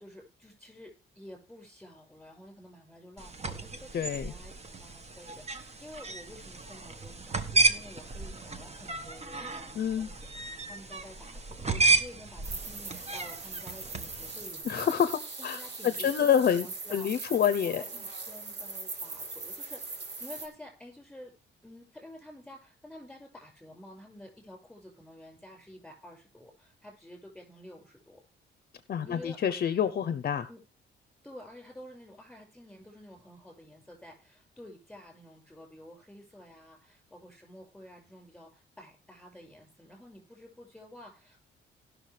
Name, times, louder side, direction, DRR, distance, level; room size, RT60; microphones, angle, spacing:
voice 1, 0.0-14.9 15.4-17.1 17.6-21.3 21.6-28.2 29.0-29.4 30.5-30.6 31.2-41.4, left 1 dB, ahead, 5.6 m, -50 dB
sound 1, 3.2-14.5, right 3 dB, 30° right, 1.3 m, -32 dB
voice 2, 3.9-4.3 9.8-10.1 14.6-17.8 28.9-30.5, left 8 dB, 50° left, 0.7 m, -27 dB
sound 2, 12.4-20.5, right 3 dB, 60° right, 2.4 m, -40 dB
18.5 x 6.2 x 3.3 m
cardioid pair, 90°, 20 cm